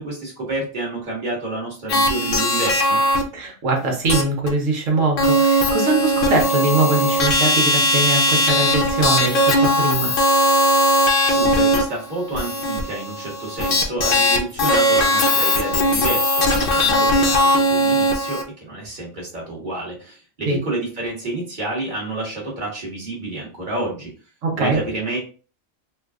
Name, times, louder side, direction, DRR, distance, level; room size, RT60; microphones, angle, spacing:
voice 1, 0.0-3.0 11.0-24.1 24.5-25.2, right 2 dB, 40° right, -4 dB, 1.4 m, -29 dB
sound 1, 1.9-3.2 4.1-4.2 4.5-4.6 5.2-18.4, left 1 dB, 55° left, 0.7 m, -18 dB
voice 2, 3.3-10.1 20.5-20.6 24.4-24.8, right 2 dB, 70° right, 1 dB, 1.3 m, -22 dB
3.8 x 2.3 x 2.4 m, 0.37 s
omnidirectional pair, 1.4 m